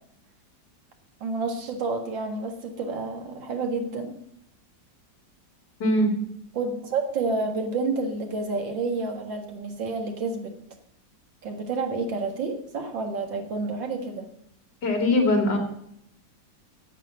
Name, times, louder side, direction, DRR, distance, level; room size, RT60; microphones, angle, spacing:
voice 1, 1.2-4.2 6.5-10.5 11.4-14.3, right 3 dB, 90° right, 4 dB, 2.4 m, -29 dB
voice 2, 5.8-6.1 14.8-15.6, left 1 dB, 65° left, 3 dB, 3.0 m, -21 dB
9.8 x 8.5 x 7.6 m, 0.75 s
omnidirectional pair, 2.0 m